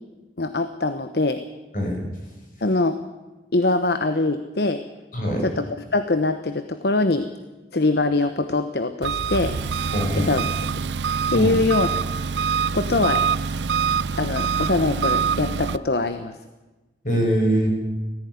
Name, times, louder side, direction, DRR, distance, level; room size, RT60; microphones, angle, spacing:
voice 1, 0.4-1.4 2.6-3.0 3.5-4.8 5.4-7.3 7.7-9.6 10.1-10.4 11.3-11.9 12.7-13.2 14.2-16.4, left 2 dB, 65° left, 9 dB, 1.0 m, -23 dB
voice 2, 5.1-5.4 9.9-10.3 11.3-11.5 17.0-17.7, equal, 50° left, 1 dB, 6.0 m, -22 dB
Engine, 9.0-15.8, right 6 dB, 80° right, 0.6 m, -25 dB
18.0 x 15.0 x 9.6 m, 1.2 s
head